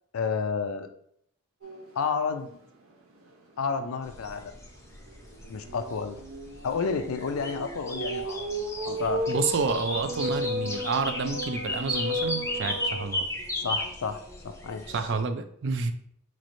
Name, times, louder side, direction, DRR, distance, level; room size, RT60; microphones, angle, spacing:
voice 1, 0.1-0.9 1.9-2.5 3.6-4.6 5.5-6.2 6.6-8.5 8.8-9.5 13.6-15.1, left 5 dB, 80° left, 8 dB, 0.4 m, -31 dB
sound 1, 1.6-2.0 2.4-2.5 2.9-3.0 5.1-13.0, equal, 90° right, 0.7 m, -34 dB
sound 2, 4.0-15.2, left 1 dB, 15° left, 0.5 m, -36 dB
voice 2, 9.3-13.3 14.9-15.9, right 4 dB, 60° right, 9 dB, 0.4 m, -29 dB
4.1 x 3.1 x 2.6 m, 0.67 s
head